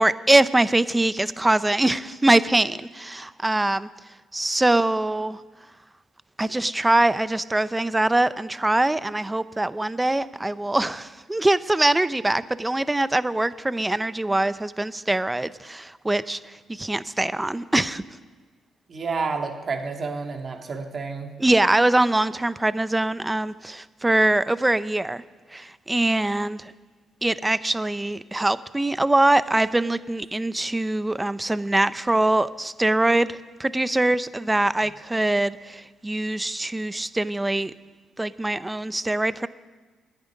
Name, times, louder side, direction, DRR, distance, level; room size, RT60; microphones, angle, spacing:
voice 1, 0.0-3.9 4.3-5.4 6.4-18.0 21.4-25.2 25.5-26.7 27.2-37.7 38.2-39.5, right 2 dB, 15° right, 15 dB, 0.5 m, -23 dB
voice 2, 18.9-21.3, right 4 dB, 45° right, 3 dB, 1.8 m, -30 dB
10.5 x 9.0 x 9.7 m, 1.3 s
cardioid pair, 90°, 0 cm